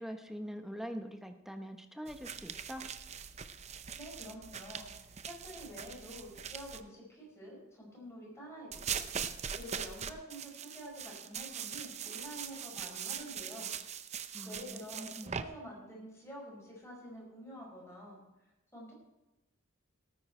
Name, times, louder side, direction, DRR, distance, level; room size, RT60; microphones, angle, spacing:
voice 1, 0.0-2.9 14.3-15.4, equal, ahead, 6 dB, 0.9 m, -44 dB
sound 1, 2.1-6.8 8.7-15.4, right 7 dB, 30° right, 0.6 m, -41 dB
voice 2, 4.0-9.3 9.6-13.7 14.4-18.2 18.7-18.9, equal, 15° left, -3 dB, 5.2 m, -48 dB
18.0 x 9.3 x 4.4 m, 1.0 s
head